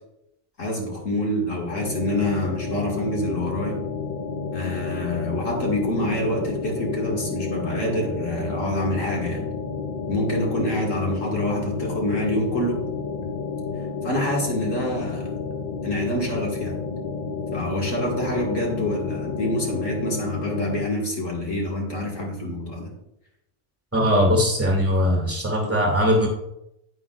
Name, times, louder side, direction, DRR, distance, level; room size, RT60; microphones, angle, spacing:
voice 1, 0.6-3.8 4.5-9.5 10.1-12.8 14.0-15.3 15.8-16.8 17.5-23.0, left 1 dB, 70° left, -1 dB, 2.3 m, -26 dB
sound 1, 1.7-20.9, left 5 dB, 45° left, 0.6 m, -31 dB
voice 2, 23.9-26.3, equal, 10° right, 0 dB, 2.2 m, -20 dB
9.7 x 9.0 x 2.4 m, 0.83 s
omnidirectional pair, 1.4 m